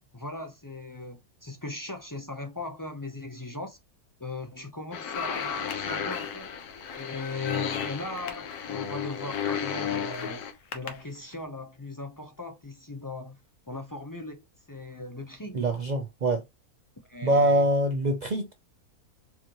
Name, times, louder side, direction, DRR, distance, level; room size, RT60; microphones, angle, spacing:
voice 1, 0.1-3.8 4.2-6.6 6.9-10.4 10.7-13.4 13.7-15.6 17.1-17.7, left 2 dB, 25° left, 0.4 m, -38 dB
sound 1, 4.9-10.5, left 7 dB, 80° left, 1.3 m, -33 dB
sound 2, 5.1-11.4, left 5 dB, 60° left, 1.3 m, -44 dB
voice 2, 15.5-16.4 17.2-18.5, right 1 dB, 85° right, 0.3 m, -24 dB
4.8 x 3.0 x 2.9 m
omnidirectional pair, 1.6 m